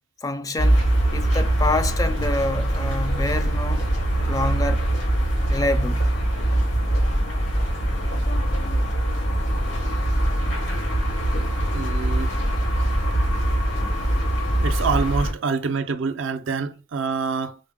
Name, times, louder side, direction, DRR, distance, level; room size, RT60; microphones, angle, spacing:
voice 1, 0.2-0.9 1.1-3.8 4.2-4.9 5.5-6.1, left 2 dB, 20° left, 0.3 m, -27 dB
sound 1, 0.6-15.3, right 1 dB, 80° left, 2.1 m, -22 dB
voice 2, 11.7-12.3 14.6-17.6, right 5 dB, 80° right, 0.4 m, -26 dB
5.2 x 2.1 x 3.6 m
head